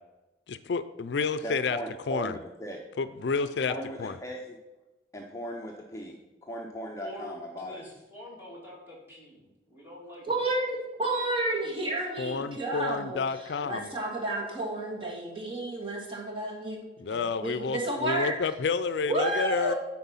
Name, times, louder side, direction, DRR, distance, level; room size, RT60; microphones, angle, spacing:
voice 1, 0.5-1.8 2.1-2.4 3.0-3.7 4.0-4.1 12.2-13.9 17.0-19.7, left 5 dB, 70° left, 13 dB, 0.4 m, -30 dB
voice 2, 1.4-2.8 3.6-4.6 5.1-7.8, equal, 15° left, 0 dB, 0.6 m, -38 dB
voice 3, 7.0-10.2, equal, 10° right, -4 dB, 2.4 m, -46 dB
voice 4, 10.3-13.2 13.6-16.8 17.1-18.3 19.1-19.8, right 2 dB, 30° right, -1 dB, 1.6 m, -31 dB
9.9 x 4.4 x 5.6 m, 1.1 s
head